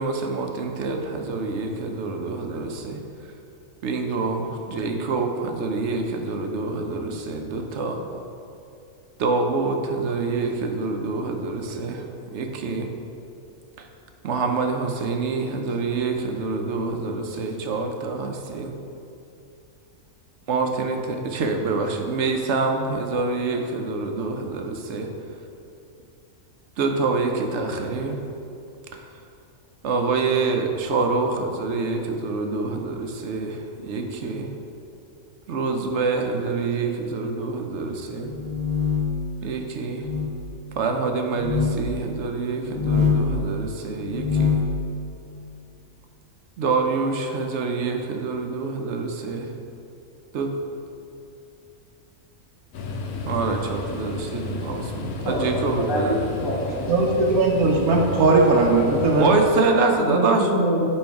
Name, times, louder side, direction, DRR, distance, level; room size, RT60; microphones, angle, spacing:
voice 1, 0.0-3.0 3.8-8.0 9.2-12.0 12.3-12.9 13.8-13.9 14.2-18.7 20.5-25.1 26.8-28.2 28.9-29.1 29.8-34.5 35.5-38.3 39.4-40.1 40.7-44.7 46.6-49.5 50.3-50.6 53.3-56.3 59.2-60.5, right 3 dB, 60° right, 4 dB, 0.8 m, -26 dB
sound 1, 38.2-39.2 39.9-40.3 41.3-41.8 42.6-43.3 44.0-44.7, left 5 dB, 50° left, 0.4 m, -23 dB
sound 2, 52.7-59.4, left 3 dB, 85° left, 1.1 m, -33 dB
voice 2, 55.0-57.9 60.0-60.9, equal, 70° left, -3 dB, 1.6 m, -27 dB
voice 3, 56.9-59.3, right 3 dB, 85° right, -1 dB, 1.2 m, -18 dB
8.7 x 3.1 x 4.6 m, 2.7 s
omnidirectional pair, 1.5 m